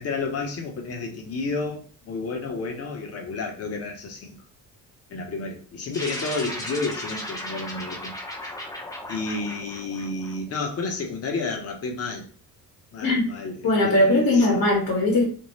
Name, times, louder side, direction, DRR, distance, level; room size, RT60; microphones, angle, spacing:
voice 1, 0.0-4.4 5.1-8.1 9.1-12.2 12.9-14.5, left 3 dB, 45° left, 0.8 m, -31 dB
sound 1, 5.9-10.6, left 1 dB, 10° left, 0.6 m, -36 dB
voice 2, 13.6-15.2, left 1 dB, 65° left, 1.0 m, -20 dB
2.6 x 2.0 x 3.1 m
cardioid pair, 135°, 36 cm